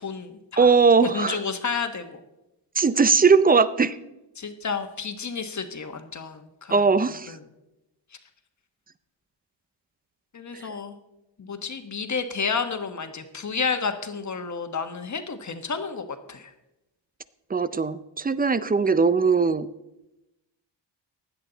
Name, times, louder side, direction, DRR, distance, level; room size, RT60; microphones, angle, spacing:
voice 1, 0.0-0.7 1.0-2.2 4.4-6.9 7.3-7.4 10.3-10.9 11.4-16.5, left 5 dB, 40° left, 7 dB, 1.3 m, -31 dB
voice 2, 0.6-1.4 2.8-4.0 6.7-7.3 10.5-10.6 17.5-19.7, right 5 dB, 20° right, 15 dB, 0.5 m, -20 dB
16.0 x 10.5 x 4.0 m, 0.94 s
cardioid pair, 110°, 44 cm